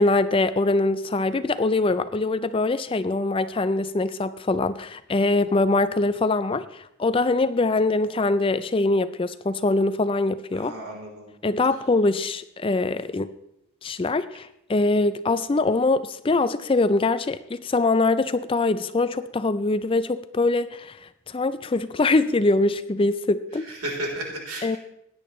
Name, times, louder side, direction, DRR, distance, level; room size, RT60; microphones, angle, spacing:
voice 1, 0.0-10.7 11.4-13.3 13.8-21.0 21.3-23.7 24.6-24.8, left 2 dB, 25° left, 13 dB, 0.4 m, -23 dB
voice 2, 10.5-11.3 23.7-24.8, right 1 dB, 80° right, 0 dB, 3.7 m, -33 dB
17.0 x 10.5 x 3.2 m, 0.78 s
head